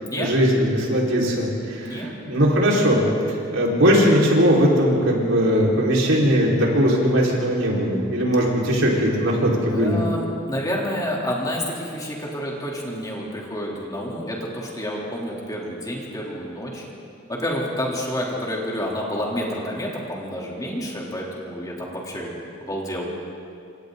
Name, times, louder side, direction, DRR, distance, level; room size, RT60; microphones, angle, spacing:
voice 1, 0.2-10.0, equal, 75° right, -4 dB, 5.0 m, -19 dB
voice 2, 1.8-2.1 9.7-16.9 17.3-23.1, equal, 20° left, -3 dB, 3.5 m, -29 dB
28.0 x 26.5 x 4.0 m, 2.5 s
head